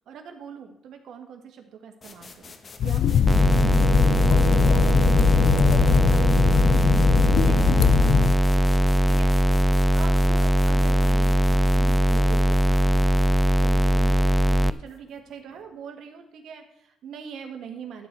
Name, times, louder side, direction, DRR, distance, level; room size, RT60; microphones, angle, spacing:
voice 1, 0.1-9.3 9.9-18.1, right 7 dB, 75° right, 5 dB, 1.7 m, -43 dB
sound 1, 2.0-15.7, left 4 dB, 40° left, 1.6 m, -47 dB
sound 2, 2.8-8.3, left 9 dB, 65° left, 0.5 m, -22 dB
sound 3, 3.3-14.7, equal, ahead, 0.5 m, -20 dB
12.0 x 4.7 x 8.2 m, 0.78 s
cardioid pair, 90°, 0 cm